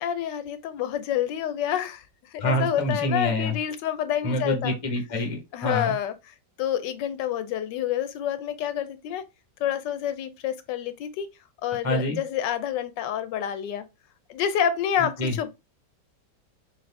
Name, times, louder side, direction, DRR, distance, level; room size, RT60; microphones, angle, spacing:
voice 1, 0.0-2.0 2.3-4.8 5.5-6.1 6.6-9.2 9.6-11.3 11.6-13.8 14.3-15.5, left 10 dB, 90° left, 1.3 m, -28 dB
voice 2, 2.4-3.6 4.2-5.9 11.8-12.2 15.2-15.3, left 1 dB, 30° left, 0.7 m, -26 dB
4.1 x 3.0 x 3.2 m
omnidirectional pair, 1.9 m